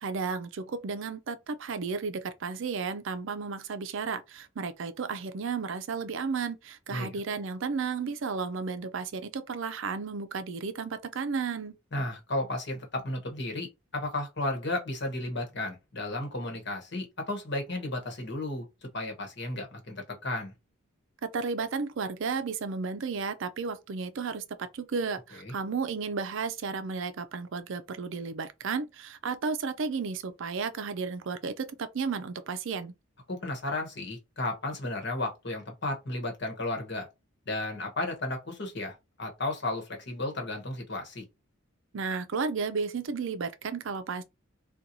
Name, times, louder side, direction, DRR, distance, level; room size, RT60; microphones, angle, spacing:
voice 1, 0.0-11.8 21.2-32.9 41.9-44.2, right 5 dB, 60° right, 0.4 m, -33 dB
voice 2, 11.9-18.6 18.9-20.5 33.3-37.1 37.5-41.2, left 2 dB, 50° left, 1.1 m, -33 dB
4.3 x 2.3 x 2.6 m
head